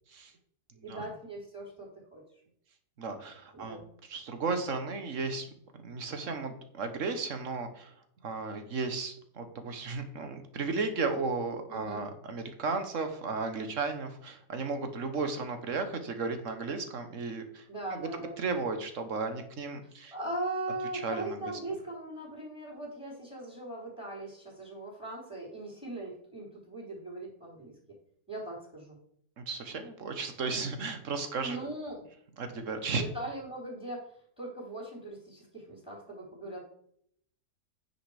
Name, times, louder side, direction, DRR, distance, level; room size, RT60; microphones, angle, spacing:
voice 1, 0.8-2.2 3.5-3.8 11.7-12.0 17.7-18.4 20.1-27.7 28.3-29.0 31.4-32.0 32.9-36.6, right 2 dB, 5° right, -2 dB, 3.9 m, -39 dB
voice 2, 3.0-3.8 4.1-5.5 5.8-7.9 8.2-17.6 17.9-18.1 18.4-20.1 20.9-21.4 29.4-31.6 32.4-33.0, right 4 dB, 50° right, 8 dB, 1.5 m, -34 dB
9.6 x 5.4 x 5.0 m, 0.66 s
omnidirectional pair, 1.7 m